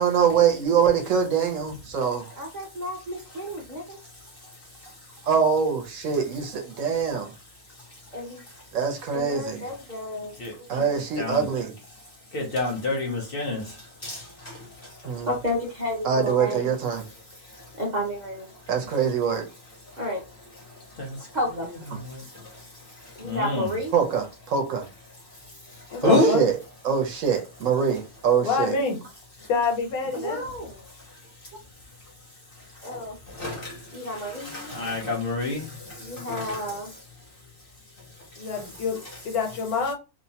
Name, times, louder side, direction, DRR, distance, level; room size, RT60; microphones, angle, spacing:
voice 1, 0.0-2.3 5.3-7.3 8.7-9.7 10.7-11.7 15.0-15.3 16.0-17.0 18.7-19.5 23.9-24.9 26.0-26.6 26.8-28.8, right 6 dB, 65° right, 1.0 m, -24 dB
voice 2, 2.4-4.0 8.1-8.4 9.1-10.3 10.6-10.9 15.0-16.7 17.8-18.5 20.0-20.2 21.3-21.7 23.2-23.9 30.1-30.8 32.8-33.2 33.9-34.7 36.0-36.9, equal, 45° right, 0.6 m, -31 dB
voice 3, 4.0-5.3 7.7-8.6 10.4-10.8 11.2-11.5 11.9-15.3 17.3-17.8 19.9-20.0 20.6-21.4 21.9-23.7 25.2-26.3 29.4-29.5 30.9-31.5 32.0-32.1 32.5-36.8 38.0-38.8, left 1 dB, 55° left, 0.7 m, -31 dB
voice 4, 25.9-26.5 28.4-29.0 29.5-30.5 38.4-39.9, left 5 dB, 85° left, 1.2 m, -27 dB
2.8 x 2.1 x 2.7 m
omnidirectional pair, 1.5 m